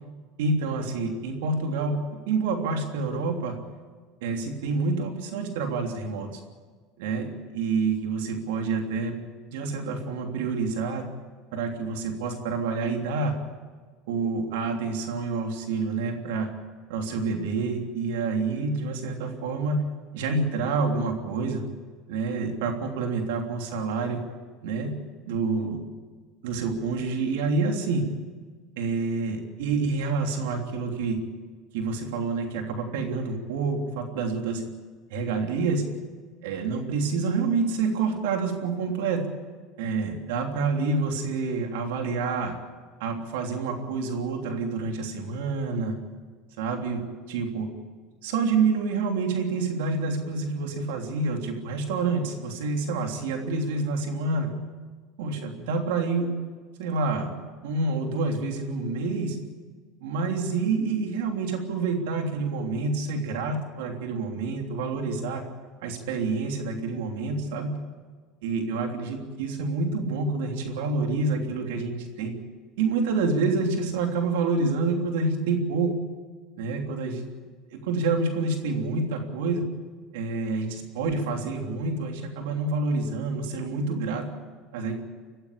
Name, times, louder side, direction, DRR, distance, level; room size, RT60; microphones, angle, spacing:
voice 1, 0.4-2.0 2.3-3.6 4.2-6.3 7.0-7.3 7.5-9.2 9.5-11.0 11.5-13.3 14.1-16.5 16.9-19.8 20.1-21.6 22.1-24.2 24.6-24.9 25.2-25.8 26.4-28.1 28.8-31.2 31.7-34.6 35.1-35.8 36.4-39.2 39.8-42.5 43.0-46.0 46.6-47.7 48.2-54.5 55.2-56.3 56.8-57.3 57.6-59.4 60.0-65.4 65.8-67.8 68.4-72.3 72.8-75.9 76.6-77.2 77.7-79.6 80.1-84.3 84.7-85.0, right 4 dB, 85° right, 3 dB, 3.2 m, -28 dB
23.0 x 15.5 x 8.5 m, 1.5 s
supercardioid pair, 130°, 0 cm